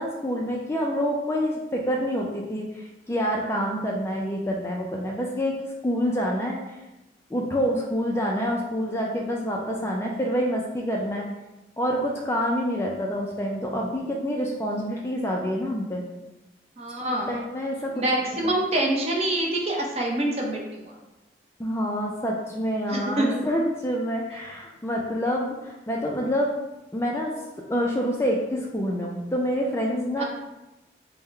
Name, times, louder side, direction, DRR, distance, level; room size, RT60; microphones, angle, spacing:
voice 1, 0.0-5.6 5.8-6.8 7.3-11.3 11.8-16.0 17.2-18.0 18.4-18.5 21.6-26.5 26.9-27.3 27.7-30.2, equal, 15° left, -1 dB, 0.3 m, -27 dB
voice 2, 16.8-17.3 17.9-20.9 22.9-23.4 30.2-30.3, right 1 dB, 35° right, -1 dB, 0.6 m, -26 dB
3.6 x 2.1 x 4.3 m, 1.0 s
head